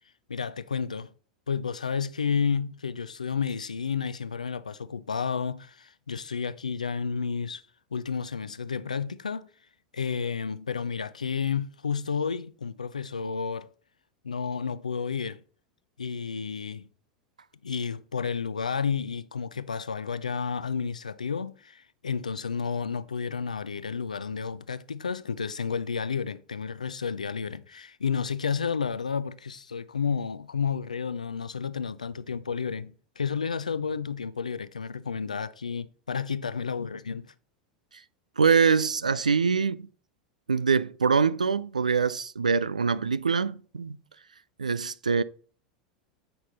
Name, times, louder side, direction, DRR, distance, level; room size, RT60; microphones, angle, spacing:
voice 1, 0.3-1.1 1.5-7.6 7.9-9.5 9.9-13.7 14.2-15.4 16.0-16.9 17.6-37.2, left 6 dB, 80° left, 0.5 m, -31 dB
voice 2, 38.4-39.9 40.5-44.0 44.6-45.2, right 5 dB, 80° right, 0.4 m, -24 dB
8.4 x 5.7 x 4.0 m
figure-of-eight pair, 85°, 4 cm